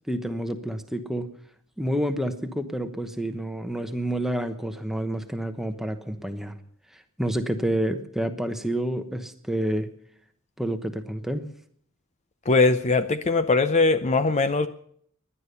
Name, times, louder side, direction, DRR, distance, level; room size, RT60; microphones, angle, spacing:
voice 1, 0.1-1.3 1.8-6.5 6.9-9.9 10.6-11.4, right 1 dB, ahead, 7 dB, 1.0 m, -29 dB
voice 2, 12.5-14.7, left 3 dB, 30° left, 10 dB, 0.6 m, -21 dB
16.5 x 11.0 x 6.8 m, 0.63 s
head